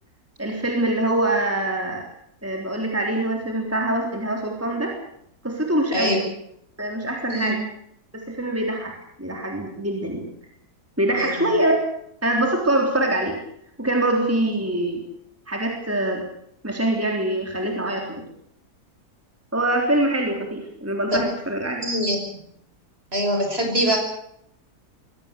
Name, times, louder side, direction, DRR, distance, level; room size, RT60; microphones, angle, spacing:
voice 1, 0.4-2.0 2.4-4.9 5.4-6.2 6.8-7.6 8.1-8.9 9.2-10.2 11.0-11.8 12.2-13.4 13.8-15.0 15.5-16.2 16.6-18.2 19.5-21.8, right 1 dB, 10° right, 1 dB, 3.6 m, -24 dB
voice 2, 5.9-6.2 7.3-7.5 11.2-11.5 21.8-22.2 23.1-24.0, equal, 40° right, 3 dB, 6.3 m, -23 dB
23.0 x 17.5 x 8.3 m, 0.72 s
omnidirectional pair, 1.7 m